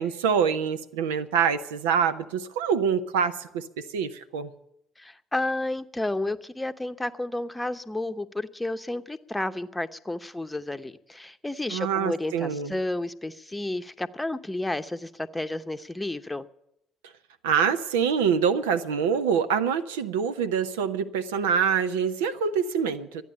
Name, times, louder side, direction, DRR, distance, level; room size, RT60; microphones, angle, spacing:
voice 1, 0.0-4.5 11.7-12.7 17.4-23.2, right 7 dB, 80° right, 10 dB, 0.6 m, -25 dB
voice 2, 5.0-16.4, left 2 dB, 10° left, 11 dB, 0.9 m, -31 dB
12.5 x 9.4 x 9.9 m, 0.80 s
hypercardioid pair, 55°, 0 cm